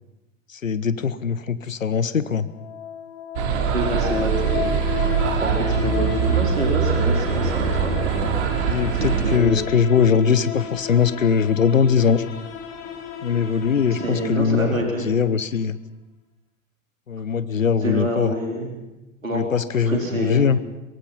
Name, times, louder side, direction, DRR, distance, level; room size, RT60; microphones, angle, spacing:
voice 1, 0.5-2.5 8.7-12.2 13.2-15.8 17.1-18.4 19.3-20.6, left 6 dB, 85° left, 15 dB, 1.0 m, -21 dB
sound 1, 2.5-15.3, left 7 dB, 45° left, 5.1 m, -34 dB
sound 2, 3.4-9.4, right 7 dB, 60° right, 3.5 m, -23 dB
voice 2, 3.7-4.6 5.4-7.9 8.2-8.3 8.9-9.6 14.0-15.1 17.8-18.7 19.2-19.4 19.9-20.6, right 1 dB, 90° right, 0 dB, 3.9 m, -27 dB
23.5 x 22.0 x 5.6 m, 1.0 s
figure-of-eight pair, 85°, 39 cm